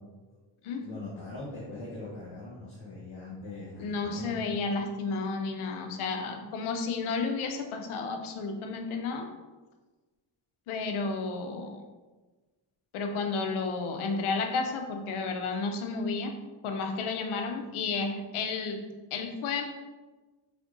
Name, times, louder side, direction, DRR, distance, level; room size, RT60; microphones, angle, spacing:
voice 1, 0.8-4.6, left 2 dB, 70° left, -6 dB, 1.2 m, -41 dB
voice 2, 3.8-9.3 10.7-11.8 12.9-16.3 16.6-18.8 19.1-19.6, left 4 dB, 90° left, 5 dB, 0.6 m, -32 dB
5.0 x 3.6 x 2.5 m, 1.3 s
cardioid pair, 60°, 48 cm